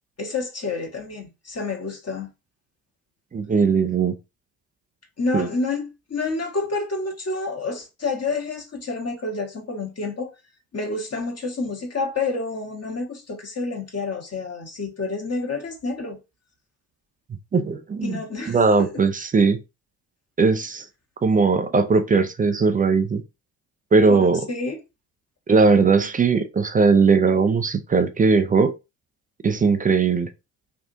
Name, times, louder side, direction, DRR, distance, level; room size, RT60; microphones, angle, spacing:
voice 1, 0.2-2.3 5.2-10.3 10.7-16.2 18.0-19.0 24.1-24.8, left 3 dB, 30° left, 1.2 m, -29 dB
voice 2, 3.3-4.1 5.3-5.5 17.5-18.2 18.5-19.6 20.4-20.9 21.2-23.2 23.9-24.4 25.5-28.7 29.4-30.3, right 4 dB, 20° right, 0.4 m, -19 dB
3.5 x 2.5 x 2.7 m
hypercardioid pair, 50°, 48 cm